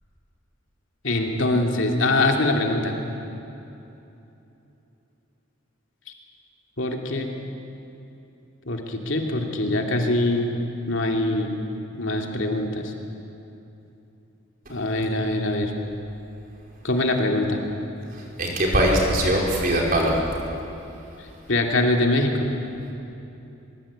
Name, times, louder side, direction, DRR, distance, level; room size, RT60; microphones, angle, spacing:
voice 1, 1.0-2.9 6.8-7.3 8.7-10.5 10.9-11.5 12.0-12.9 14.7-15.7 16.8-17.6 21.5-22.5, left 2 dB, 60° left, 2 dB, 2.7 m, -23 dB
voice 2, 18.4-20.2, right 1 dB, 40° right, -2 dB, 5.0 m, -21 dB
23.5 x 22.5 x 8.7 m, 2.9 s
head